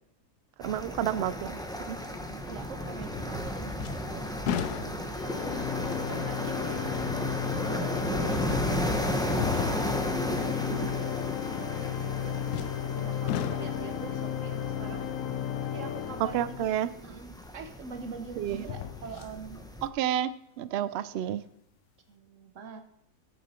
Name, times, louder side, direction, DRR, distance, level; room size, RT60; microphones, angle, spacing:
sound 1, 0.6-19.9, equal, 5° left, 0.8 m, -35 dB
voice 1, 0.6-2.0 10.7-10.9 16.3-16.9 18.4-18.7 19.8-20.3 20.6-21.4, right 11 dB, 80° right, 15 dB, 0.5 m, -30 dB
voice 2, 2.1-6.9 7.4-10.8 12.0-15.1 15.6-16.8 17.0-19.6 21.0-21.4 22.1-22.8, right 5 dB, 55° right, 7 dB, 1.4 m, -44 dB
sound 2, 3.1-3.5 3.8-5.4 6.0-6.1 7.9-8.0 9.3-10.2 12.5-13.0 13.3-14.0 17.0-17.1 18.5-19.4 19.8-19.9, left 10 dB, 80° left, 1.1 m, -35 dB
Organ, 5.2-17.0, left 9 dB, 65° left, 1.0 m, -34 dB
17.0 x 7.1 x 4.3 m, 0.76 s
omnidirectional pair, 1.7 m